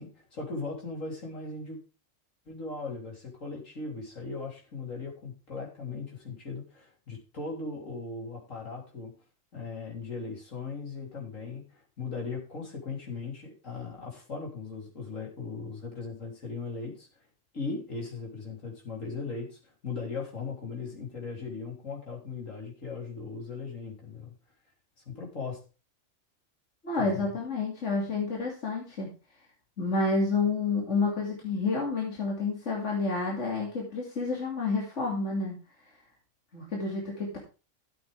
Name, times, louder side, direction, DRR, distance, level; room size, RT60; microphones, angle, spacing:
voice 1, 0.0-1.8 2.5-9.1 9.5-17.1 17.5-24.3 25.1-25.6 27.0-27.3, left 4 dB, 80° left, -1 dB, 3.9 m, -38 dB
voice 2, 26.8-29.1 29.8-35.6 36.5-37.4, left 3 dB, 65° left, -2 dB, 2.9 m, -29 dB
13.0 x 7.8 x 3.5 m, 0.32 s
omnidirectional pair, 1.3 m